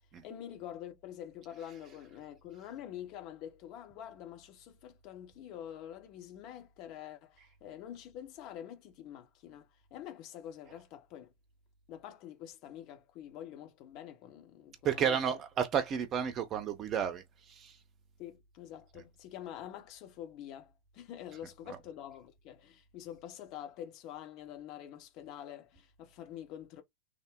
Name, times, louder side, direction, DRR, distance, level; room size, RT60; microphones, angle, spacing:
voice 1, 0.2-11.3 11.9-15.4 18.2-26.8, left 10 dB, 40° left, 0.8 m, -46 dB
voice 2, 14.8-17.8 21.6-21.8, right 8 dB, 30° right, 0.7 m, -32 dB
3.6 x 2.1 x 3.6 m
figure-of-eight pair, 90°, 0 cm